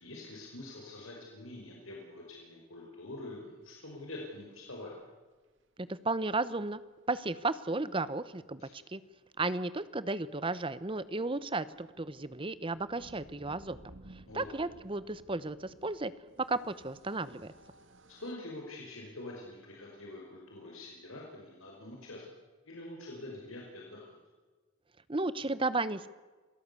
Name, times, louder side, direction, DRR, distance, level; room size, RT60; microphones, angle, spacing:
voice 1, 0.0-5.0 8.6-8.8 14.3-14.5 18.1-22.2 22.7-24.2, left 2 dB, 70° left, -2 dB, 5.2 m, -45 dB
sound 1, 5.6-5.7 6.9-7.0 7.3-7.4 7.6-7.7 10.3-18.3, right 1 dB, 60° right, 2.0 m, -58 dB
voice 2, 5.8-6.8 7.1-9.0 9.4-13.8 14.3-16.1 16.5-17.5 25.1-26.1, right 3 dB, 25° right, 16 dB, 0.9 m, -34 dB
27.5 x 18.0 x 8.4 m, 1.3 s
head